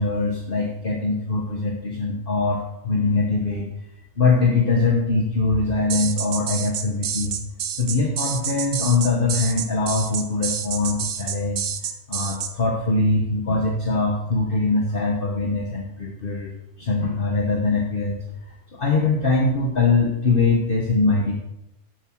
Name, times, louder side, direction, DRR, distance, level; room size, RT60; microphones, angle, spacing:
voice 1, 0.0-3.7 4.2-7.4 7.8-11.7 12.1-16.5 16.8-18.2 18.7-21.3, left 3 dB, 45° left, 0 dB, 1.3 m, -22 dB
sound 1, 5.9-12.5, right 8 dB, 60° right, 0.9 m, -28 dB
11.5 x 7.4 x 4.6 m, 0.87 s
omnidirectional pair, 1.3 m